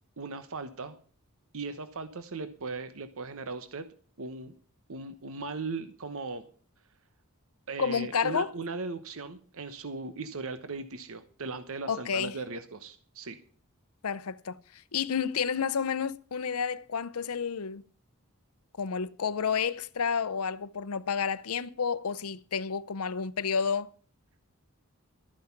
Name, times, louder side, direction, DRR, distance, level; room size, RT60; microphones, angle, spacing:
voice 1, 0.2-1.0 1.5-3.9 4.2-4.5 4.9-6.5 7.7-13.4, right 3 dB, 70° right, 1.1 m, -38 dB
voice 2, 7.8-8.5 11.9-12.4 14.0-14.6 14.9-17.8 18.8-23.9, left 6 dB, 80° left, 0.7 m, -30 dB
13.0 x 9.6 x 5.9 m
head